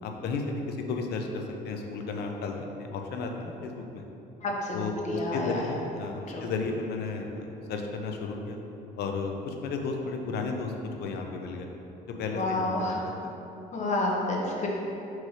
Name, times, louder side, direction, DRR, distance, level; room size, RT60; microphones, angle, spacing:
voice 1, 0.0-4.0 4.7-8.6 9.0-10.7 11.0-11.7 12.2-12.9, left 4 dB, 75° left, 3 dB, 0.8 m, -33 dB
voice 2, 4.4-5.7 6.3-6.5 12.3-13.1 13.7-14.7, left 2 dB, 45° left, -2 dB, 1.3 m, -30 dB
5.6 x 4.8 x 4.8 m, 2.9 s
cardioid pair, 110°, 17 cm